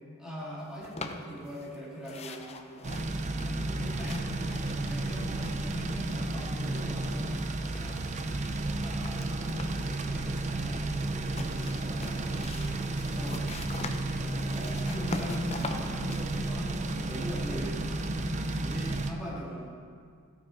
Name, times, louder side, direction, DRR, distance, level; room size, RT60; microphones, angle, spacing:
voice 1, 0.2-2.9 3.2-4.4 4.8-8.0 8.3-12.8 13.0-13.4 13.9-17.9 18.1-19.7, equal, 5° right, -8 dB, 2.6 m, -41 dB
sound 1, 0.8-1.8 2.0-5.8 6.0-7.4 7.8-10.0 11.1-17.4, left 3 dB, 30° left, 0.6 m, -44 dB
sound 2, 2.8-19.1, right 2 dB, 30° right, 0.5 m, -32 dB
13.5 x 8.8 x 4.2 m, 2.1 s
head